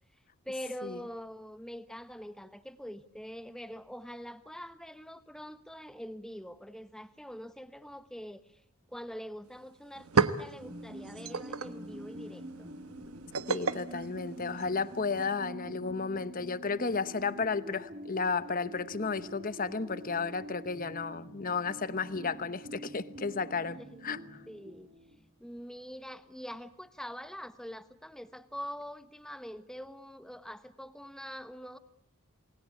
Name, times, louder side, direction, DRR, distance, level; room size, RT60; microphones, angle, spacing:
voice 1, 0.4-8.6 8.9-12.7 23.8-24.0 24.5-24.9 25.4-31.8, equal, 5° left, 1.2 m, -44 dB
sound 1, 9.5-9.6 9.8-15.0, right 5 dB, 90° right, 1.3 m, -34 dB
sound 2, 10.6-25.2, right 1 dB, 40° right, 3.1 m, -46 dB
voice 2, 13.5-23.8 24.0-24.2, left 4 dB, 40° left, 1.0 m, -33 dB
28.5 x 20.5 x 8.4 m
head